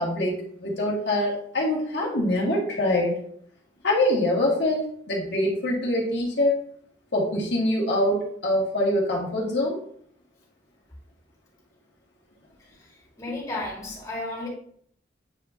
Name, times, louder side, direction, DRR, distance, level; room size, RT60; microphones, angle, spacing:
voice 1, 0.0-3.1 3.8-6.5 7.1-9.8 13.3-13.4, left 1 dB, 80° left, -3 dB, 1.8 m, -24 dB
voice 2, 13.2-14.5, left 2 dB, 20° left, -5 dB, 2.2 m, -32 dB
8.5 x 4.9 x 2.7 m, 0.64 s
head